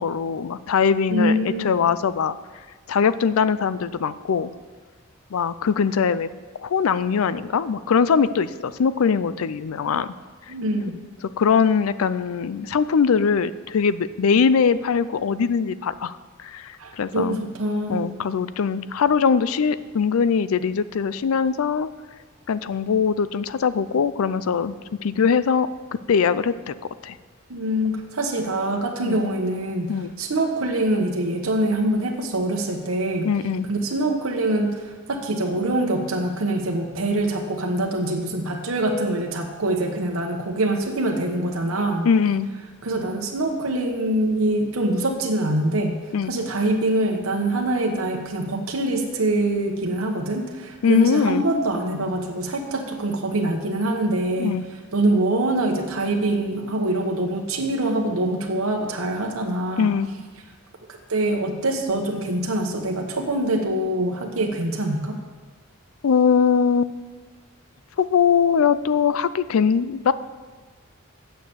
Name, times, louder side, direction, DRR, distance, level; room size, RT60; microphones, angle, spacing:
voice 1, 0.0-2.4 2.9-4.5 5.3-6.3 6.6-10.1 11.4-16.1 16.4-17.4 17.9-21.9 22.5-24.7 25.0-25.7 26.1-26.7 27.0-27.2 29.0-29.2 29.9-30.1 33.2-33.7 42.0-42.5 46.1-46.3 50.8-51.4 54.4-54.6 59.8-60.1 66.0-66.9 68.0-70.1, left 6 dB, 85° left, 15 dB, 0.4 m, -21 dB
voice 2, 1.1-1.7 10.5-11.0 16.8-18.1 27.5-33.3 33.7-42.1 42.8-46.0 46.3-54.6 54.9-59.9 61.1-65.2, right 1 dB, 85° right, 2 dB, 1.1 m, -24 dB
9.0 x 6.7 x 6.9 m, 1.4 s
head